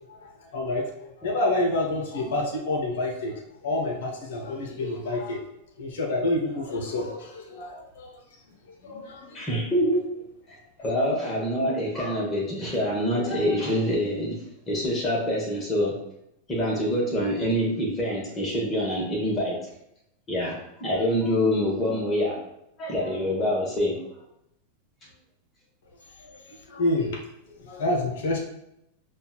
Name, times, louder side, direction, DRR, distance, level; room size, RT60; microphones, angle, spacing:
voice 1, 0.2-5.4 5.8-8.1 8.8-9.4 26.2-27.2 27.5-28.4, left 2 dB, 55° left, 1 dB, 0.8 m, -28 dB
voice 2, 9.3-10.0 10.5-14.4 14.7-15.9 16.5-19.6 20.3-22.4 22.8-24.0, equal, 25° left, -3 dB, 1.1 m, -26 dB
6.6 x 2.3 x 2.3 m, 0.80 s
figure-of-eight pair, 90°, 0 cm